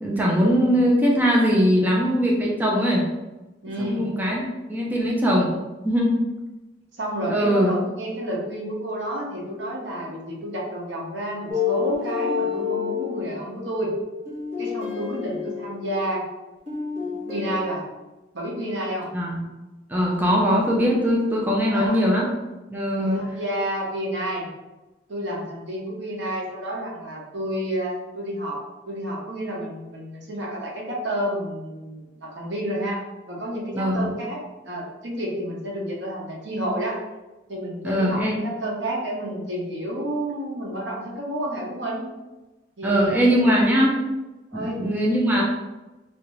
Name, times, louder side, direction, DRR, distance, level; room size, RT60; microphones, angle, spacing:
voice 1, 0.0-3.1 3.8-5.5 5.8-6.2 7.3-7.7 19.1-19.4 19.9-22.3 22.7-23.3 33.7-34.1 37.8-38.4 42.8-44.0 44.5-45.4, equal, 10° right, -3 dB, 0.5 m, -21 dB
voice 2, 3.6-4.1 7.0-13.9 14.6-16.3 17.2-17.8 18.3-19.1 21.7-22.0 23.0-24.5 25.1-28.6 28.9-33.0 33.3-37.0 37.5-42.0 42.8-43.7 44.5-44.8, right 1 dB, 80° right, -2 dB, 0.9 m, -30 dB
sound 1, 11.5-16.4 16.7-17.8, left 7 dB, 45° right, 1.4 m, -29 dB
3.2 x 2.6 x 3.1 m, 1.1 s
head